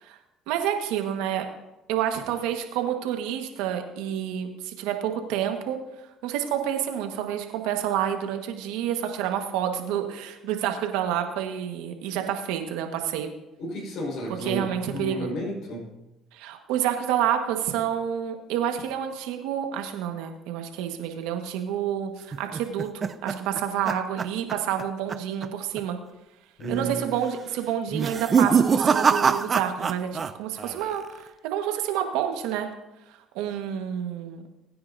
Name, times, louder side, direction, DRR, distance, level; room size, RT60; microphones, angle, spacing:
voice 1, 0.5-1.5 1.9-5.8 6.2-13.3 14.4-15.3 16.3-26.0 26.7-32.7 33.3-34.4, right 10 dB, 85° right, 5 dB, 1.4 m, -29 dB
voice 2, 13.6-14.7 14.9-15.9 26.6-27.0, right 1 dB, 65° left, 0 dB, 4.8 m, -32 dB
sound 1, 22.3-24.8 25.1-25.5 25.8-25.9 26.6-27.0 27.9-30.3 30.6-31.2, right 6 dB, 40° right, 0.7 m, -24 dB
21.5 x 9.6 x 2.7 m, 0.99 s
supercardioid pair, 75°, 0 cm